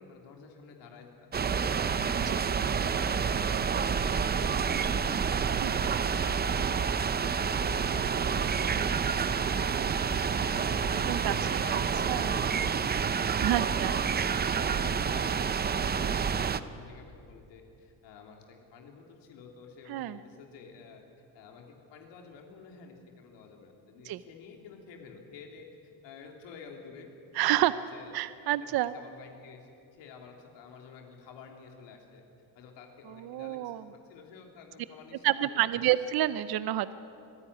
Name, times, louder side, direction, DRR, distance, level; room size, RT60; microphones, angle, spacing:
voice 1, 0.0-2.2 2.8-3.6 3.9-13.1 13.5-21.0 21.3-25.7 26.0-27.1 27.4-32.2 32.5-35.9, left 5 dB, 85° left, 2 dB, 3.4 m, -51 dB
sound 1, 1.3-16.6, right 6 dB, 25° right, 0.6 m, -28 dB
voice 2, 11.1-11.8 12.1-12.4 13.4-14.0 19.9-20.2 24.0-24.2 27.3-27.8 28.1-28.9 33.2-33.8 35.2-36.9, right 14 dB, 60° right, 14 dB, 0.7 m, -29 dB
25.5 x 15.5 x 9.9 m, 2.6 s
cardioid pair, 140°, 43 cm